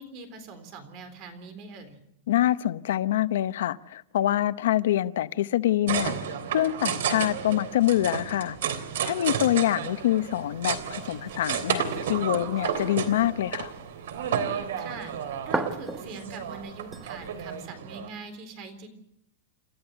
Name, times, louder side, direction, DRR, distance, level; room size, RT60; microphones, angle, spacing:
voice 1, 0.0-2.0 14.8-15.1 15.4-18.9, right 4 dB, 35° right, 3.8 m, -42 dB
voice 2, 2.3-6.1 6.5-8.6 9.0-13.7, left 13 dB, 70° left, 0.8 m, -25 dB
sound 1, 5.9-18.1, right 8 dB, 75° right, 3.2 m, -32 dB
sound 2, 9.8-17.6, right 2 dB, 5° right, 1.2 m, -40 dB
28.5 x 14.0 x 7.9 m
supercardioid pair, 175°, 0 cm